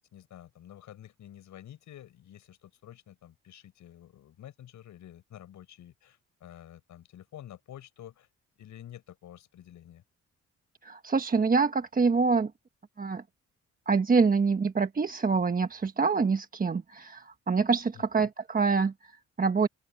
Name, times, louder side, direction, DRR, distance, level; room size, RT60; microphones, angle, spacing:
voice 1, 0.0-8.3 8.6-10.0 18.1-18.2, left 11 dB, 75° left, 7.2 m, -49 dB
voice 2, 10.8-12.5 13.0-13.2 13.9-19.7, right 4 dB, 30° right, 1.2 m, -26 dB
open air
cardioid pair, 90°, 30 cm